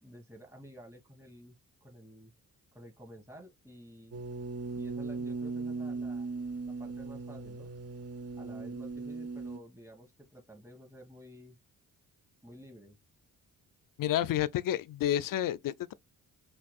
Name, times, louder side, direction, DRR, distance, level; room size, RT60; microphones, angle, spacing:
voice 1, 0.0-1.6 1.8-2.3 2.7-4.2 4.8-7.7 8.4-11.6 12.4-13.0, equal, 5° right, 2.6 m, -52 dB
sound 1, 4.1-9.6, right 3 dB, 30° right, 0.8 m, -38 dB
voice 2, 14.0-15.9, left 12 dB, 45° left, 0.5 m, -30 dB
5.8 x 2.4 x 2.4 m
hypercardioid pair, 40°, 46 cm